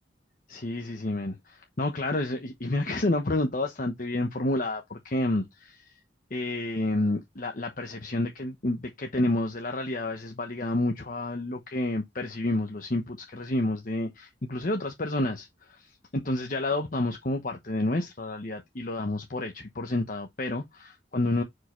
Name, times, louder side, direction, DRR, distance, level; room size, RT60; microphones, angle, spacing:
voice 1, 0.5-5.9 6.3-21.4, left 2 dB, 45° left, 1.0 m, -30 dB
6.5 x 4.8 x 3.1 m
head